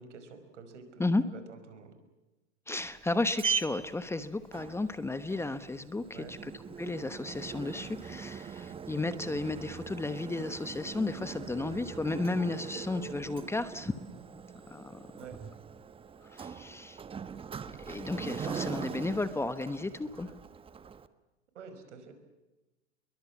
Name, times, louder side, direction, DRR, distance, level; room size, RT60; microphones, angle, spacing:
voice 1, 0.0-1.9 6.1-6.3 15.2-15.4 21.6-22.1, right 5 dB, 85° right, 9 dB, 5.4 m, -48 dB
voice 2, 2.7-13.9 14.7-15.1 16.3-17.0 17.8-20.3, left 2 dB, 5° left, 12 dB, 1.1 m, -33 dB
Sliding door, 2.8-21.1, right 7 dB, 15° right, 1.1 m, -41 dB
29.5 x 22.5 x 7.2 m, 1.1 s
hypercardioid pair, 120°, 35 cm